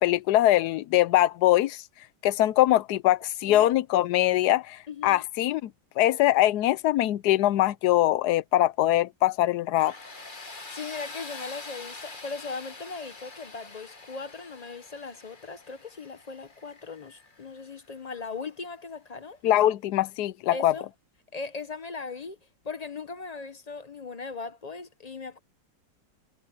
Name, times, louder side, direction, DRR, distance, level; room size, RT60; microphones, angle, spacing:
voice 1, 0.0-1.8 2.2-5.7 6.0-9.9 19.4-20.7, left 14 dB, 70° left, 1.1 m, -22 dB
voice 2, 4.9-5.2 10.7-19.4 20.5-20.9 21.3-22.4 22.6-25.4, left 4 dB, 45° left, 0.5 m, -38 dB
Tools, 9.8-18.5, left 3 dB, 25° left, 1.8 m, -45 dB
omnidirectional pair, 2.0 m